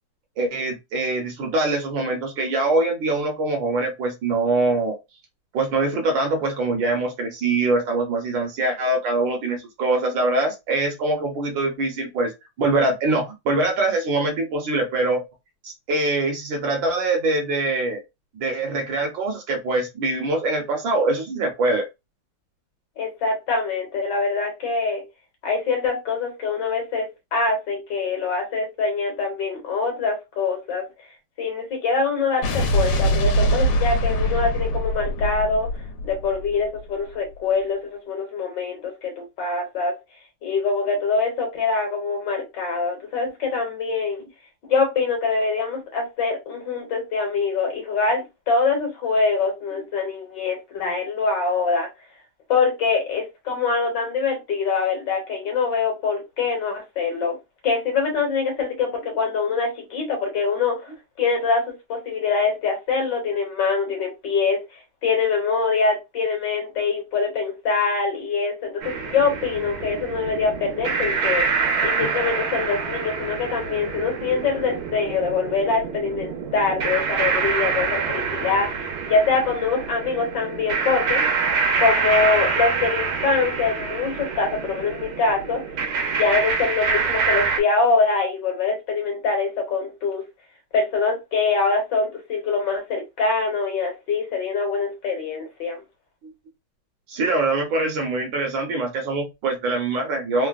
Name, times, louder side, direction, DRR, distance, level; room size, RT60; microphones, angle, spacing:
voice 1, 0.4-5.0 5.5-12.3 12.6-15.2 15.6-18.0 18.3-21.8 72.0-72.1 96.2-96.3 97.1-100.5, right 2 dB, 70° right, 1.4 m, -23 dB
voice 2, 23.0-25.0 25.4-27.1 27.3-30.8 31.4-35.7 36.0-39.9 40.4-44.2 44.7-51.9 52.5-57.4 57.6-61.6 61.9-64.6 65.0-71.5 71.8-81.5 81.8-85.6 86.2-90.2 90.7-95.8, left 4 dB, 60° left, 1.5 m, -24 dB
Explosion, 32.4-36.8, equal, 80° left, 1.5 m, -23 dB
sound 1, 68.8-87.6, right 5 dB, 85° right, 1.6 m, -26 dB
3.8 x 2.0 x 2.4 m
omnidirectional pair, 2.4 m